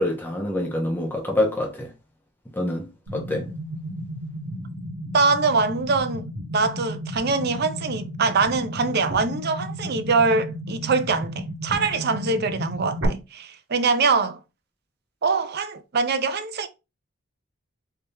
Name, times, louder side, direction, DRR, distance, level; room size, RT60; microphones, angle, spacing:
voice 1, 0.0-1.9 2.6-3.5, left 1 dB, 10° left, 0.9 m, -26 dB
sound 1, 3.1-13.1, equal, 70° right, 1.2 m, -34 dB
voice 2, 5.1-6.3 6.5-14.4 15.2-16.7, right 4 dB, 50° right, 0.5 m, -23 dB
3.4 x 2.8 x 3.3 m
head